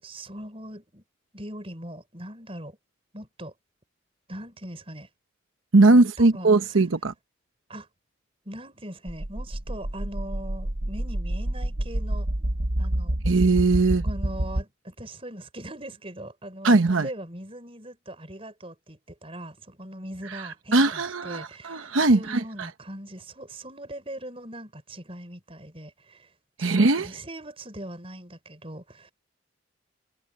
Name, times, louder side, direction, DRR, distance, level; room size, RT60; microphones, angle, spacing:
voice 1, 0.0-1.0 1.3-2.8 3.1-3.5 4.3-5.1 5.9-6.8 7.7-7.9 8.5-12.3 12.8-13.2 14.0-26.3 26.6-29.1, right 1 dB, 30° right, 5.5 m, -40 dB
voice 2, 5.7-7.1 13.3-14.0 16.6-17.1 20.3-20.4 20.7-22.4 26.6-27.1, right 3 dB, 90° right, 0.9 m, -20 dB
sound 1, 9.1-14.6, right 1 dB, 60° right, 1.4 m, -28 dB
head